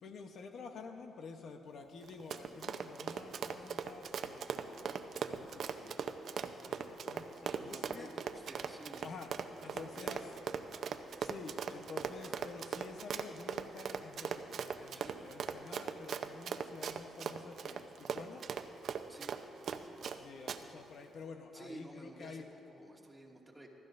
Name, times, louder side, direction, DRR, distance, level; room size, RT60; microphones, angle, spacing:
voice 1, 0.0-6.0 6.6-8.1 9.0-9.3 9.6-10.2 11.2-18.4 20.0-22.5, left 4 dB, 60° left, 5 dB, 0.9 m, -50 dB
Run, 2.0-20.2 20.5-20.6, right 7 dB, 60° right, 0.7 m, -39 dB
voice 2, 7.4-9.1 9.6-10.4 11.2-11.3 14.9-15.2 19.1-19.4 21.5-23.7, right 2 dB, 15° right, -2 dB, 2.2 m, -52 dB
24.5 x 13.0 x 2.6 m, 2.8 s
cardioid pair, 90°, 0 cm